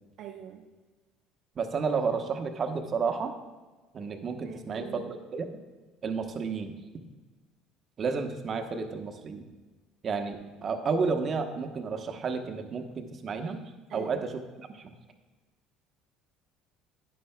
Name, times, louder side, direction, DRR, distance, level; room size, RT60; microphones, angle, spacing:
voice 1, 0.2-0.6 4.4-5.2 13.9-14.3, right 10 dB, 60° right, 1 dB, 0.6 m, -43 dB
voice 2, 1.6-3.3 3.9-5.5 6.0-6.7 8.0-9.5 10.0-10.4 10.6-13.6 13.9-14.2 14.7-14.9, right 5 dB, 45° right, 5 dB, 0.9 m, -31 dB
11.5 x 9.4 x 2.2 m, 1.3 s
hypercardioid pair, 65°, 0 cm